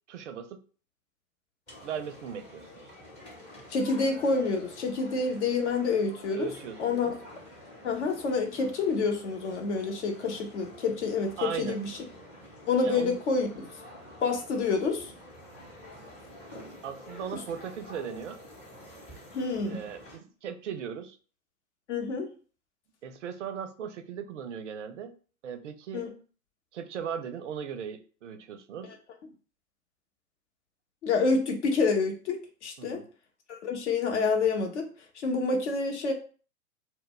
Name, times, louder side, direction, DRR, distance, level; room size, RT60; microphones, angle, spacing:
voice 1, 0.1-0.6 1.8-2.7 6.4-7.1 11.4-11.8 12.8-13.2 16.8-18.4 19.7-21.2 23.0-25.1 25.4-26.1 26.7-28.9 32.8-33.1, right 8 dB, 55° right, 10 dB, 0.5 m, -38 dB
sound 1, 1.7-20.2, left 1 dB, 15° left, 0.7 m, -49 dB
voice 2, 3.7-6.5 6.8-7.1 7.8-12.0 12.7-13.5 14.2-15.1 19.3-19.8 21.9-22.3 25.9-26.1 31.0-32.4 32.6-33.0 33.5-34.8 35.2-36.1, left 4 dB, 50° left, 3 dB, 0.8 m, -28 dB
2.1 x 2.1 x 3.7 m, 0.38 s
figure-of-eight pair, 110°, 45 cm